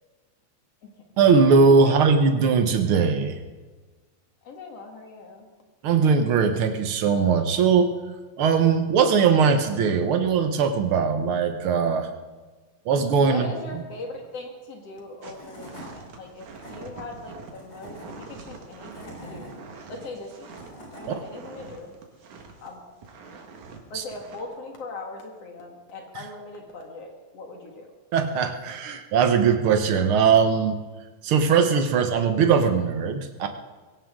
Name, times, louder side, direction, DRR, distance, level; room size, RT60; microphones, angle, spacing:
voice 1, 1.2-3.4 5.8-7.9 8.4-12.1 12.8-13.8 21.1-21.2 23.9-24.0 26.1-26.3 28.1-30.8 31.2-33.5, right 5 dB, 60° right, 7 dB, 1.6 m, -20 dB
voice 2, 4.4-5.5 13.2-19.5 19.9-20.5 21.0-21.9 22.6-22.8 23.9-27.9, left 2 dB, 60° left, 2 dB, 2.8 m, -39 dB
Tools / Wood, 15.0-15.1 15.3-15.9 16.4-16.7 17.5-18.1 18.7-19.5 20.3-21.1, right 1 dB, 30° left, 4.7 m, -43 dB
sound 1, 15.2-22.7 23.0-23.8 24.2-24.4, right 4 dB, 85° right, 3.1 m, -44 dB
22.5 x 17.0 x 3.7 m, 1.3 s
omnidirectional pair, 3.3 m